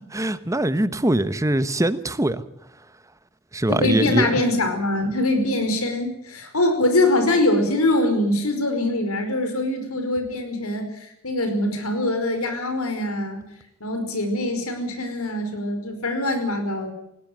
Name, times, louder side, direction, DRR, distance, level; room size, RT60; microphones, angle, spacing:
voice 1, 0.0-2.4 3.5-4.4, right 1 dB, 15° right, 13 dB, 1.0 m, -22 dB
voice 2, 3.7-13.4 13.8-16.9, left 1 dB, 75° left, 6 dB, 5.2 m, -23 dB
20.0 x 17.0 x 9.4 m, 0.79 s
head